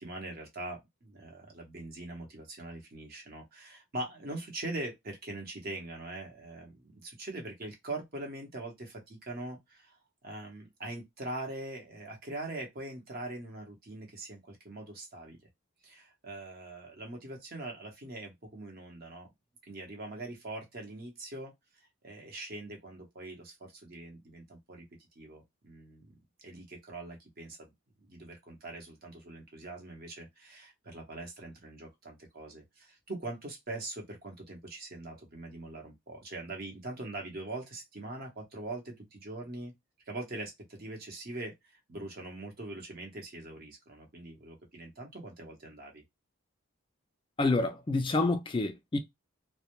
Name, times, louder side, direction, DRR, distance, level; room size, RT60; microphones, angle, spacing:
voice 1, 0.0-15.4 15.8-19.3 19.6-21.5 22.0-24.8 25.2-26.1 26.4-27.7 28.1-39.7 40.1-46.0, right 2 dB, 45° right, 0.8 m, -42 dB
voice 2, 47.4-49.0, left 2 dB, 25° left, 0.3 m, -28 dB
2.1 x 2.1 x 2.9 m
head